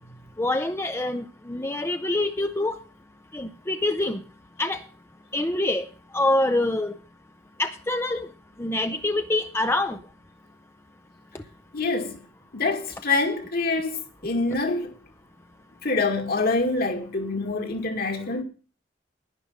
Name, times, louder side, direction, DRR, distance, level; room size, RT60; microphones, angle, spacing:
voice 1, 0.4-2.8 3.3-4.2 4.6-4.8 5.3-5.9 6.1-6.9 7.6-8.3 8.6-10.0, left 2 dB, 15° left, 0.7 m, -25 dB
voice 2, 11.7-12.2 12.5-15.0 15.8-18.4, left 3 dB, 55° left, 2.2 m, -26 dB
11.5 x 10.5 x 5.4 m
head